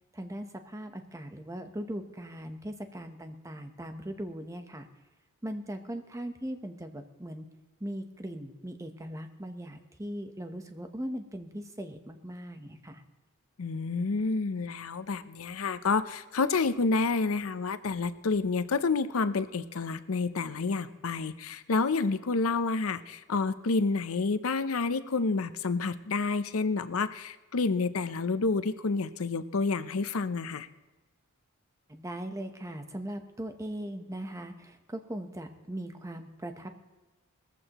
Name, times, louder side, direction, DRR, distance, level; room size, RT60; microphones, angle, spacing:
voice 1, 0.1-4.9 5.4-7.5 7.8-13.0 31.9-36.7, right 1 dB, 15° right, 6 dB, 0.9 m, -39 dB
voice 2, 13.6-30.7, left 4 dB, 80° left, 12 dB, 0.6 m, -29 dB
19.0 x 14.5 x 3.0 m, 1.2 s
head